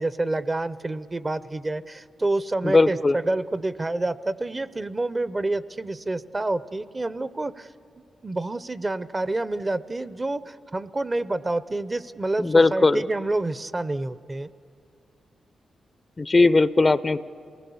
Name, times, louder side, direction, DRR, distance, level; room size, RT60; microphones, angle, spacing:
voice 1, 0.0-7.7 8.2-14.5, right 2 dB, 30° right, 16 dB, 0.6 m, -28 dB
voice 2, 2.6-3.1 12.4-13.0 16.2-17.2, left 3 dB, 30° left, 16 dB, 0.5 m, -18 dB
27.5 x 19.5 x 7.1 m, 2.5 s
cardioid pair, 70°, 0 cm